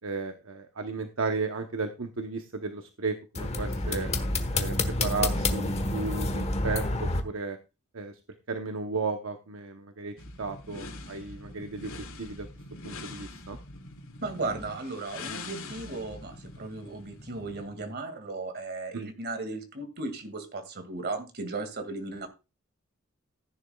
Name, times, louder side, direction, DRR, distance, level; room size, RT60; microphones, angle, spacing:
voice 1, 0.0-4.1 4.5-4.8 5.0-7.6 7.9-8.1 8.5-12.5 12.8-13.6 18.9-19.1, right 4 dB, 70° right, 6 dB, 0.9 m, -34 dB
sound 1, 3.4-7.2, left 2 dB, 30° left, 1.2 m, -28 dB
sound 2, 10.2-17.7, left 2 dB, 85° left, 2.3 m, -43 dB
voice 2, 14.2-22.3, right 3 dB, 50° right, 8 dB, 2.2 m, -36 dB
14.5 x 10.0 x 2.3 m, 0.28 s
head